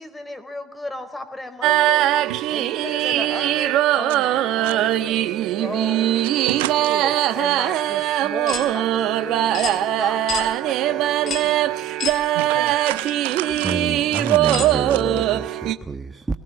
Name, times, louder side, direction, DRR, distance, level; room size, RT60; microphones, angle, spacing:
voice 1, 0.0-2.1 2.5-5.2 5.6-6.2 6.8-11.8, left 1 dB, 10° left, 4.4 m, -35 dB
sound 1, 1.6-15.7, right 13 dB, 65° right, 1.2 m, -21 dB
voice 2, 6.4-6.9 12.3-13.7 14.1-14.6 14.9-15.0, right 18 dB, 80° right, 0.8 m, -29 dB
sound 2, 8.5-8.7 9.5-9.8 10.3-10.5 11.3-11.5 12.0-12.2 13.0-13.1 14.5-14.7, left 6 dB, 50° left, 4.0 m, -28 dB
voice 3, 13.5-16.3, right 3 dB, 20° right, 1.5 m, -29 dB
21.5 x 17.0 x 7.4 m
hypercardioid pair, 65°, 0 cm